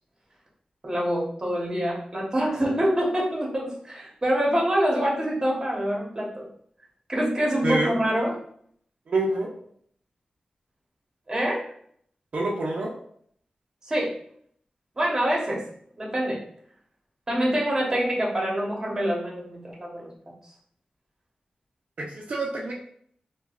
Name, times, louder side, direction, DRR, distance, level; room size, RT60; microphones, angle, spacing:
voice 1, 0.8-6.5 7.1-8.3 11.3-11.6 13.9-14.1 15.0-15.6 16.0-16.4 17.3-20.1, equal, 25° right, -2 dB, 1.0 m, -25 dB
voice 2, 7.6-7.9 9.1-9.5 12.3-12.9 22.0-22.7, right 2 dB, 70° right, -2 dB, 0.5 m, -26 dB
4.6 x 2.2 x 2.4 m, 0.63 s
wide cardioid pair, 120°, 2 cm